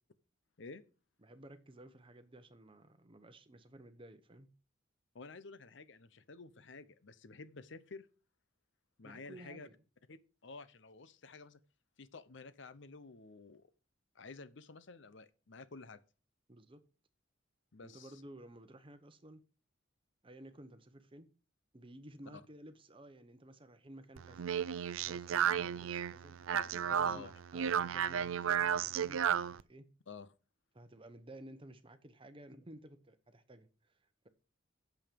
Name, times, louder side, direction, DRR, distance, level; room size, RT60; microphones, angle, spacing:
voice 1, 1.2-4.5 9.0-9.7 16.5-16.8 17.8-19.4 20.2-21.3 21.7-24.5 24.8-26.3 26.9-29.9 30.7-34.0, right 1 dB, 25° right, 0.9 m, -54 dB
voice 2, 5.1-8.1 9.0-9.7 10.1-11.6 12.0-13.7 14.1-16.0 17.7-18.1 22.3-22.4 26.5-27.3 30.1-30.3, left 4 dB, 65° left, 0.8 m, -51 dB
Speech, 24.2-29.6, right 8 dB, 85° right, 0.4 m, -33 dB
8.8 x 7.1 x 5.2 m
head